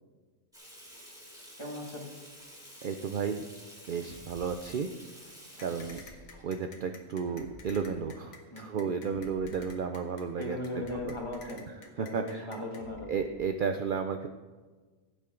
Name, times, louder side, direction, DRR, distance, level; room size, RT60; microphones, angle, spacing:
Water tap faucet / Sink (filling or washing), 0.5-6.4, equal, ahead, 3.2 m, -51 dB
voice 1, 1.6-2.1 5.6-6.0 8.5-8.8 10.4-11.6 12.0-13.1, left 1 dB, 20° left, -1 dB, 2.0 m, -38 dB
voice 2, 2.8-3.4 3.9-4.9 5.6-6.0 6.4-10.6 11.1-11.2 12.0-12.5 13.1-14.3, right 6 dB, 65° right, 7 dB, 0.5 m, -33 dB
sound 1, 4.0-4.6 5.7-6.3 7.3-7.9 9.0-9.7 10.7-11.4 12.7-13.3, right 1 dB, 20° right, 2.9 m, -52 dB
sound 2, 5.6-12.8, left 5 dB, 70° left, 1.5 m, -51 dB
15.0 x 8.7 x 3.8 m, 1.4 s
omnidirectional pair, 1.5 m